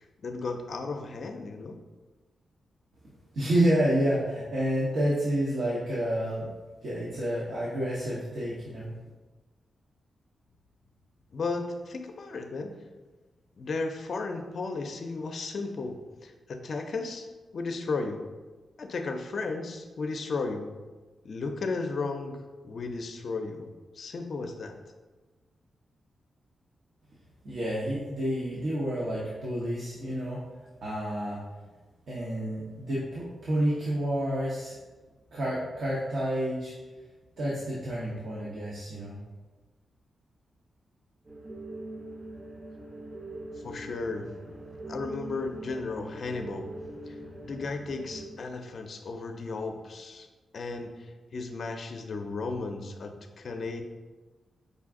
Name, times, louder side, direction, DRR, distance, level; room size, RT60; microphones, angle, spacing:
voice 1, 0.0-1.8 11.3-12.7 13.6-17.3 17.5-18.3 18.8-20.7 21.2-24.8 43.6-44.3 44.9-46.7 47.0-47.2 47.4-50.3 50.5-53.8, left 3 dB, 60° left, 6 dB, 0.5 m, -34 dB
voice 2, 3.3-6.5 6.8-8.9 27.4-30.4 30.8-31.4 32.1-34.7 35.3-36.7 37.4-39.2, right 1 dB, 70° right, -7 dB, 0.9 m, -29 dB
sound 1, 41.3-48.3, right 1 dB, 40° right, 0.8 m, -42 dB
5.2 x 2.5 x 3.6 m, 1.3 s
cardioid pair, 70°, 0 cm